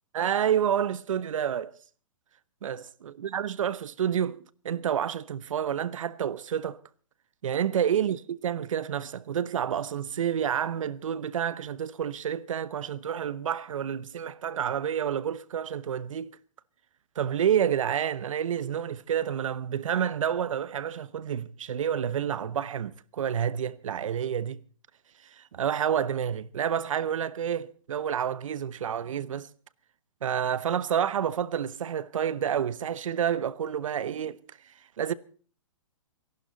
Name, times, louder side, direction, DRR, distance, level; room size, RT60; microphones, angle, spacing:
voice 1, 0.1-1.7 2.6-6.8 7.4-16.3 17.2-24.6 25.4-29.5 30.2-34.4 35.0-35.1, right 9 dB, 70° right, 0.9 m, -29 dB
26.5 x 12.0 x 4.0 m
hypercardioid pair, 160°, 17 cm